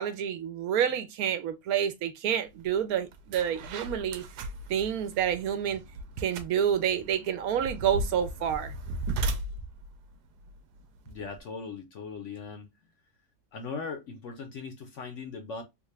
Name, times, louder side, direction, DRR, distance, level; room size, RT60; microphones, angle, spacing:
voice 1, 0.0-4.2 4.7-5.8 6.2-8.7, right 9 dB, 75° right, 1.0 m, -28 dB
sound 1, 2.6-2.7 3.1-11.4, right 1 dB, 90° right, 1.2 m, -37 dB
voice 2, 11.1-12.7 13.5-15.6, left 5 dB, 65° left, 0.8 m, -39 dB
3.5 x 2.4 x 3.1 m
omnidirectional pair, 1.7 m